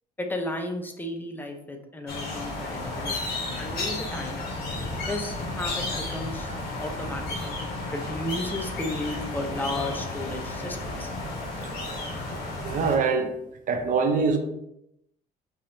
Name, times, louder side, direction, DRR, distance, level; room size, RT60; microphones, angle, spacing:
voice 1, 0.2-3.3 3.6-4.4 5.1-11.1, left 1 dB, 10° left, 0.7 m, -34 dB
sound 1, 2.1-13.0, left 2 dB, 65° left, 1.7 m, -33 dB
voice 2, 12.6-13.3 13.7-14.4, right 5 dB, 50° right, 0.7 m, -23 dB
5.0 x 3.6 x 2.7 m
cardioid pair, 110°, 17 cm